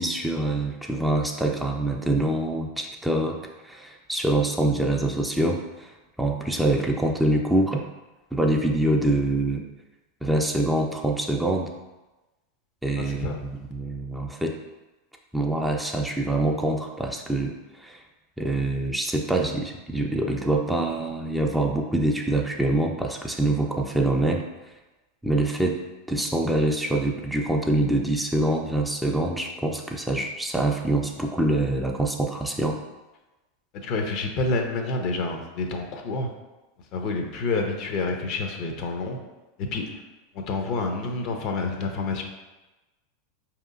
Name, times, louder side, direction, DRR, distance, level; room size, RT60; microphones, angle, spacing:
voice 1, 0.0-3.4 3.6-7.8 8.3-9.6 10.2-11.7 12.8-14.6 15.3-18.0 18.4-24.4 25.2-25.8 26.1-32.8, right 1 dB, 5° right, 1 dB, 0.4 m, -25 dB
voice 2, 13.0-13.4 33.7-36.3 36.9-39.2 39.6-40.0 40.3-42.2, left 3 dB, 50° left, 4 dB, 0.6 m, -28 dB
4.7 x 2.8 x 2.5 m, 1.1 s
hypercardioid pair, 95°, 0 cm